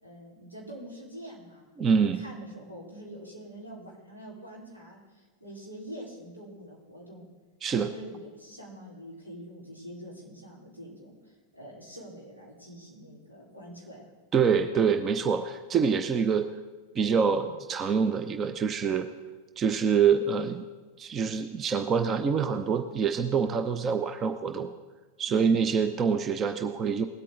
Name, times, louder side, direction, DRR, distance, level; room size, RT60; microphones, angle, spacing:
voice 1, 0.0-7.3 7.7-14.1, right 1 dB, 85° right, -5 dB, 4.0 m, -45 dB
voice 2, 1.8-2.2 7.6-7.9 14.3-16.5 16.9-19.1 19.6-20.6 21.0-24.7 25.2-27.1, right 6 dB, 25° right, 8 dB, 0.6 m, -25 dB
20.0 x 8.5 x 3.8 m, 1.3 s
figure-of-eight pair, 90°, 0 cm